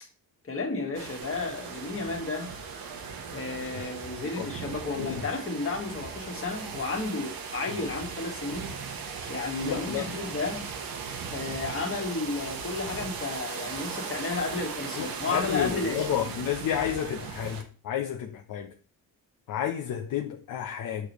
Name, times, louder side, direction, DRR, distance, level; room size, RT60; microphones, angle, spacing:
voice 1, 0.4-2.5 3.3-8.7 9.3-10.7 11.3-16.3, left 3 dB, 35° left, 1.7 m, -32 dB
sound 1, 0.9-17.6, right 5 dB, 70° right, 1.2 m, -38 dB
voice 2, 9.6-10.1 15.0-18.7 19.5-21.1, left 9 dB, 60° left, 0.7 m, -31 dB
6.7 x 4.9 x 3.0 m
cardioid pair, 95°, 37 cm